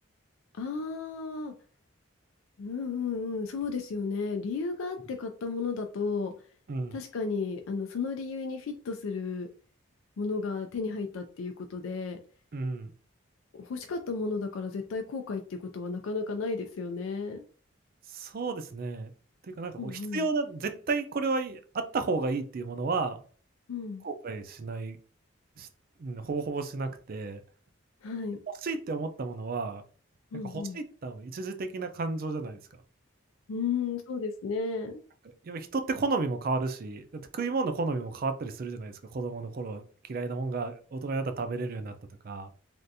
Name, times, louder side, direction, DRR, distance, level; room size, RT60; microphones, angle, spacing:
voice 1, 0.5-1.5 2.6-6.3 6.9-9.5 10.2-12.2 13.5-17.4 19.8-20.2 23.7-24.0 28.0-28.4 30.3-30.8 33.5-35.0, left 4 dB, 80° left, 5 dB, 0.4 m, -33 dB
voice 2, 12.5-12.9 18.1-19.1 19.4-23.2 24.0-25.0 25.6-25.7 26.0-27.4 28.6-29.8 30.4-32.6 35.4-41.9 42.2-42.5, right 3 dB, 45° right, 8 dB, 0.4 m, -32 dB
3.4 x 2.5 x 2.7 m, 0.40 s
head